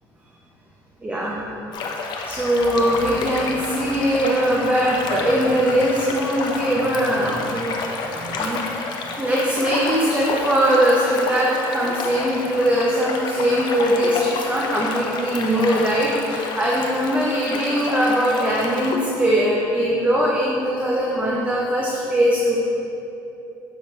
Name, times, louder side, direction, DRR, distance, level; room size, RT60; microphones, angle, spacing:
voice 1, 1.0-1.4 2.2-8.6 9.2-22.6, equal, 15° right, -4 dB, 0.8 m, -21 dB
sound 1, 1.7-19.0, left 4 dB, 60° left, 0.7 m, -30 dB
6.9 x 5.8 x 3.2 m, 2.9 s
cardioid pair, 105°, 8 cm